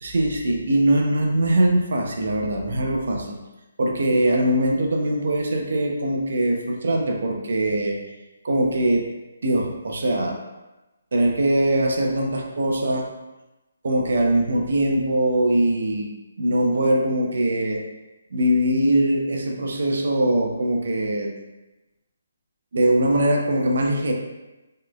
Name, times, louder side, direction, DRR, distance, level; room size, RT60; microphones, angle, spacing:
voice 1, 0.0-3.4 3.8-8.0 8.4-9.1 9.4-10.4 11.1-13.1 13.8-16.1 16.4-17.8 18.3-21.3 22.7-24.1, right 1 dB, 70° right, 1 dB, 0.7 m, -21 dB
4.0 x 3.1 x 2.3 m, 1.1 s
hypercardioid pair, 155°, 0 cm